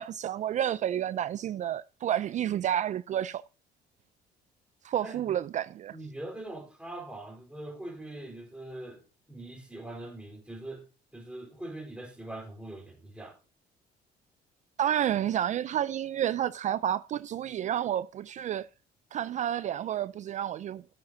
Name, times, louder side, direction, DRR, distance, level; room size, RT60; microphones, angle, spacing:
voice 1, 0.0-3.4 4.8-6.0 14.8-18.7 19.1-20.8, right 10 dB, 45° right, 0.4 m, -30 dB
voice 2, 5.0-5.4 5.9-10.9 11.1-13.4, right 1 dB, 5° right, 3.8 m, -42 dB
13.5 x 7.8 x 2.7 m
cardioid pair, 110°, 17 cm